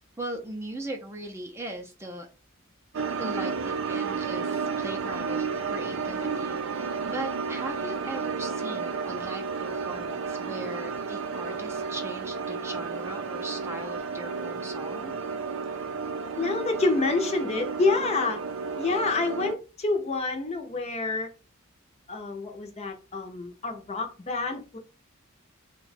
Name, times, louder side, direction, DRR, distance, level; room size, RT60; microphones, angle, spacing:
voice 1, 0.2-2.3 3.0-15.1, right 1 dB, 15° right, 2 dB, 0.4 m, -39 dB
sound 1, 2.9-19.5, right 5 dB, 70° right, 0.5 m, -32 dB
voice 2, 16.4-18.4 18.8-21.3 22.1-24.8, left 3 dB, 30° left, 4 dB, 0.5 m, -28 dB
2.8 x 2.2 x 4.0 m, 0.32 s
head